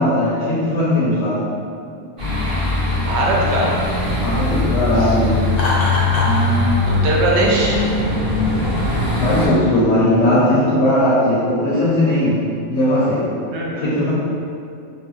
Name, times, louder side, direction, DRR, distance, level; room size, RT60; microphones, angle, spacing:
voice 1, 0.0-1.4 4.2-5.4 9.1-13.3 13.8-14.1, left 1 dB, 75° left, -8 dB, 1.0 m, -18 dB
sound 1, 2.2-9.5, left 2 dB, 30° right, 0.8 m, -20 dB
voice 2, 3.0-3.8 6.2-6.7 7.0-7.8 13.5-13.9, right 2 dB, 65° right, -4 dB, 0.8 m, -20 dB
Laughter, 5.5-6.4, left 1 dB, 55° left, 0.4 m, -22 dB
2.9 x 2.1 x 3.0 m, 2.5 s
omnidirectional pair, 1.4 m